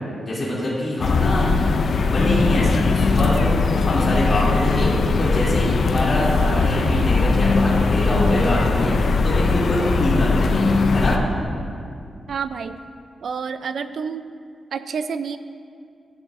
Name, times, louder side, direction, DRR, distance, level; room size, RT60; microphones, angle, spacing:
voice 1, 0.2-11.2, left 1 dB, 30° left, -8 dB, 2.5 m, -24 dB
sound 1, 1.0-11.2, left 4 dB, 50° left, 0.5 m, -20 dB
voice 2, 12.3-12.8 13.2-14.2 14.7-15.4, right 6 dB, 60° right, 11 dB, 0.4 m, -28 dB
15.0 x 11.0 x 2.5 m, 2.3 s
wide cardioid pair, 175°, 0 cm